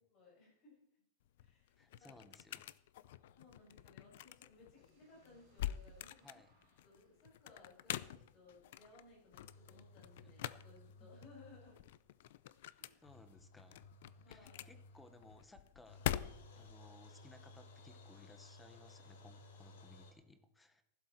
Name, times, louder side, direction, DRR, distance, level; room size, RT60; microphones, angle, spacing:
voice 1, 0.1-0.8 1.4-2.2 3.3-6.3 6.8-11.8 12.7-13.1 14.2-14.7, left 3 dB, 25° left, -4 dB, 7.0 m, -62 dB
sound 1, 1.2-16.7, left 13 dB, 55° left, 0.5 m, -46 dB
voice 2, 1.8-2.8 6.2-6.5 11.0-11.1 13.0-13.8 14.3-16.1 16.6-20.8, left 2 dB, 5° left, 10 dB, 0.8 m, -61 dB
sound 2, 4.8-8.7, right 2 dB, 30° right, 6.9 m, -76 dB
sound 3, 9.3-12.0 12.2-12.3 12.5-12.6 13.0-15.6 15.9-20.1, left 2 dB, 85° left, 4.1 m, -59 dB
15.0 x 12.0 x 4.4 m, 0.82 s
supercardioid pair, 175°, 0 cm